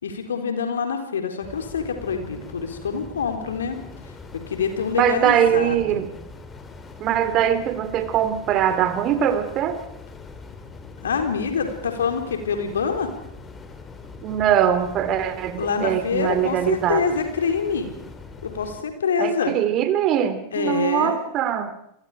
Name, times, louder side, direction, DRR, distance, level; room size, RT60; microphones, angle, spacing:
voice 1, 0.0-3.8 4.3-6.0 11.0-13.1 15.6-17.9 18.4-19.5 20.5-21.2, left 5 dB, 65° left, 6 dB, 3.9 m, -26 dB
sound 1, 1.4-18.8, left 4 dB, 15° left, 3.0 m, -42 dB
voice 2, 4.9-6.1 7.0-9.8 14.2-17.1 19.2-21.7, right 10 dB, 35° right, 11 dB, 2.8 m, -22 dB
29.5 x 23.5 x 5.1 m, 0.78 s
figure-of-eight pair, 90°, 0 cm